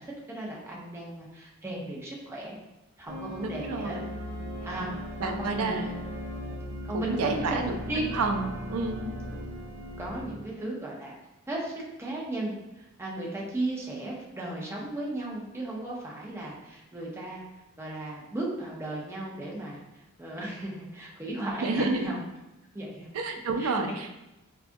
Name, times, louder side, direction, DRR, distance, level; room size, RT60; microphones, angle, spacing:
voice 1, 0.0-2.6 3.0-3.9 4.6-4.9 5.2-5.9 6.9-7.6 7.9-8.1 10.0-11.2 11.5-11.7 12.0-17.4 17.8-22.2 22.7-23.1 23.6-23.7, right 1 dB, 10° right, -4 dB, 0.6 m, -35 dB
sound 1, 3.1-10.3, equal, 60° right, 1.0 m, -38 dB
voice 2, 3.4-4.0 5.2-5.8 6.9-7.7 8.1-9.1 21.6-22.1 23.1-24.1, right 3 dB, 85° right, 5 dB, 0.4 m, -29 dB
4.6 x 2.3 x 2.5 m, 0.96 s
head